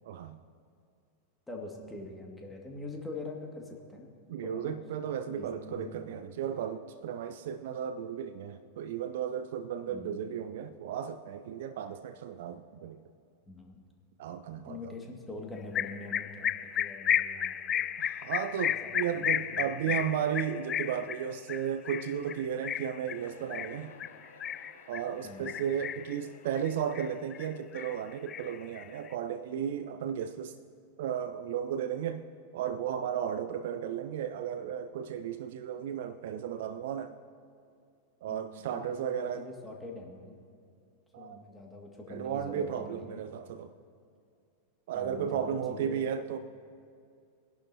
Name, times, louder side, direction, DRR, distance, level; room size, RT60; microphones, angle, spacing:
voice 1, 0.0-0.4 4.3-13.0 14.2-14.9 18.0-23.9 24.9-30.5 31.0-32.2 32.5-37.1 38.2-39.4 41.1-41.4 42.1-43.7 44.9-46.4, right 8 dB, 55° right, 13 dB, 0.4 m, -34 dB
voice 2, 1.5-4.1 4.4-4.8 5.3-5.9 9.8-10.2 13.5-13.8 14.7-17.9 18.8-20.0 25.2-25.5 38.3-40.4 41.2-43.2 44.9-46.0, left 3 dB, 10° left, 0 dB, 2.1 m, -44 dB
sound 1, 15.7-25.1 25.5-26.2 26.5-27.5 27.7-29.1, left 9 dB, 30° left, 0.3 m, -33 dB
Chuckle chortle, 23.1-27.2, left 4 dB, 70° left, 2.4 m, -55 dB
22.5 x 11.5 x 2.8 m, 2.4 s
figure-of-eight pair, 90°, 0 cm